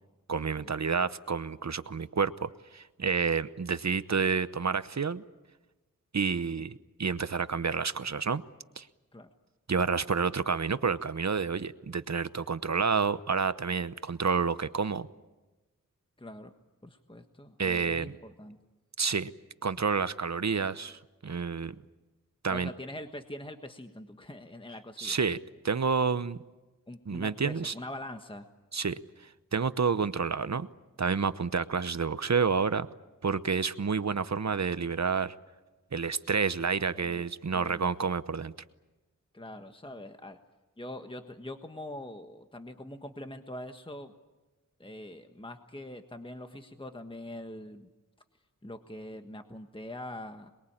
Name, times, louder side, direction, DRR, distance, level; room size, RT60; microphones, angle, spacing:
voice 1, 0.3-5.2 6.1-6.7 7.0-8.4 8.8-8.9 9.7-15.1 17.6-18.1 19.0-19.3 19.6-21.7 22.4-22.7 25.0-25.4 25.6-26.4 27.1-27.7 28.7-29.0 29.5-30.7 31.0-32.9 33.2-35.3 35.9-38.5, right 5 dB, 55° right, 14 dB, 0.9 m, -29 dB
voice 2, 16.2-16.5 16.8-18.6 22.5-25.2 26.9-28.5 36.9-37.2 37.5-37.9 39.3-40.4 40.8-44.1 44.8-47.9 48.6-50.5, left 1 dB, 15° left, 7 dB, 1.4 m, -43 dB
27.5 x 22.0 x 8.8 m, 1.1 s
wide cardioid pair, 75°, 32 cm